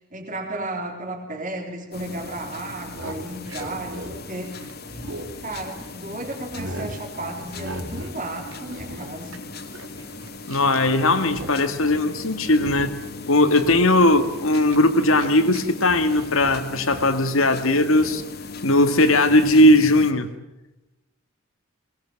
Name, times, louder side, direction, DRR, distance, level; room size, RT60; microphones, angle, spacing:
voice 1, 0.1-4.7 5.4-9.4, right 2 dB, 35° right, 3.8 m, -34 dB
sound 1, 1.9-20.1, left 3 dB, 45° left, 2.4 m, -38 dB
sound 2, 2.8-6.0 6.3-7.0 7.5-8.2 8.4-10.9 11.1-11.6 11.8-12.1 12.5-13.1 13.5-15.6 15.9-17.1 17.9-18.2, right 1 dB, 70° right, 3.3 m, -38 dB
voice 2, 10.5-13.0 13.3-18.2 18.6-20.3, left 1 dB, 70° left, 2.0 m, -18 dB
22.5 x 19.5 x 9.1 m
head